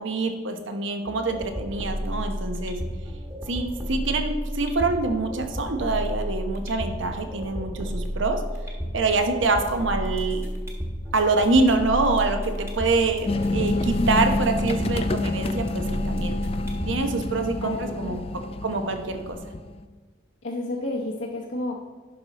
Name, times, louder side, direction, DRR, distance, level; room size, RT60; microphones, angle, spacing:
voice 1, 0.0-2.8 3.5-8.4 8.9-10.4 11.1-16.4 16.9-18.2 18.6-19.4, right 3 dB, 70° right, 6 dB, 0.9 m, -25 dB
sound 1, 1.0-17.0, equal, 15° right, 1.2 m, -32 dB
sound 2, 13.3-19.8, left 2 dB, 30° left, 0.4 m, -28 dB
voice 2, 17.6-18.2 20.4-21.8, left 2 dB, 70° left, -3 dB, 0.9 m, -31 dB
10.5 x 5.6 x 4.1 m, 1.4 s
head